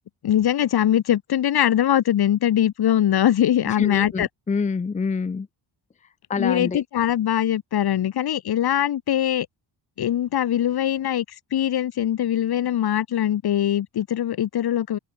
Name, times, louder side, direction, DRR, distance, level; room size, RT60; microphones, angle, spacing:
voice 1, 0.2-4.3 6.4-9.5 10.0-11.3 11.5-15.0, left 11 dB, 55° left, 2.1 m, -22 dB
voice 2, 3.7-5.5 6.3-6.8, left 5 dB, 15° left, 0.7 m, -27 dB
cardioid pair, 145°, 44 cm